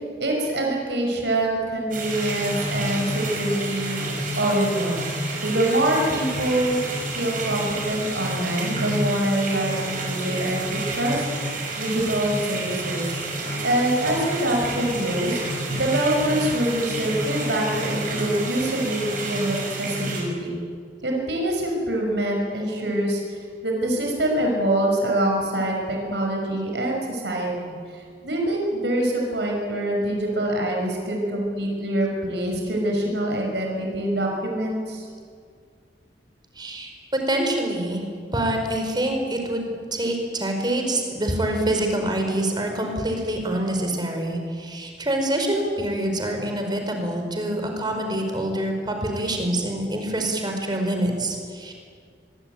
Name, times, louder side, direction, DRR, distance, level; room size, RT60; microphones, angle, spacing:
voice 1, 0.2-4.0 4.4-5.1 5.4-6.8 7.1-11.2 11.8-13.1 13.6-15.4 15.7-20.5 21.0-35.1, right 1 dB, 75° right, 0 dB, 5.9 m, -25 dB
sound 1, 1.9-20.2, right 2 dB, 50° right, 6.4 m, -29 dB
voice 2, 36.6-36.9 37.3-39.6 39.9-51.7, right 1 dB, 25° right, 3 dB, 4.9 m, -26 dB
24.5 x 22.5 x 9.3 m, 2.1 s
head